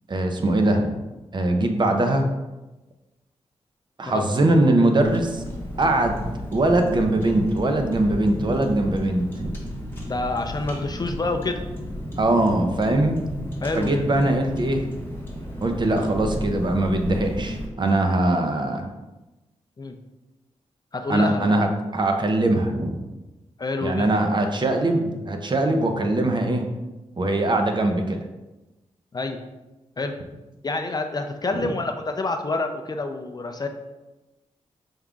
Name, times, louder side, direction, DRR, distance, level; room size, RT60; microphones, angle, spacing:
voice 1, 0.1-0.9 1.3-2.3 4.0-5.4 5.8-6.1 6.5-9.5 12.2-13.2 13.8-14.9 15.6-18.9 21.1-23.0 23.8-26.6 27.2-28.2 31.6-31.7, right 2 dB, 40° right, 5 dB, 0.6 m, -21 dB
Car, 5.0-17.7, equal, 20° left, 1.2 m, -33 dB
voice 2, 10.1-11.6 13.6-14.0 19.8-20.0 20.9-21.5 23.6-24.1 29.1-29.4 30.0-30.2 30.6-33.7, left 3 dB, 35° left, 6 dB, 0.4 m, -27 dB
5.3 x 3.6 x 2.4 m, 1.1 s
cardioid pair, 70°, 12 cm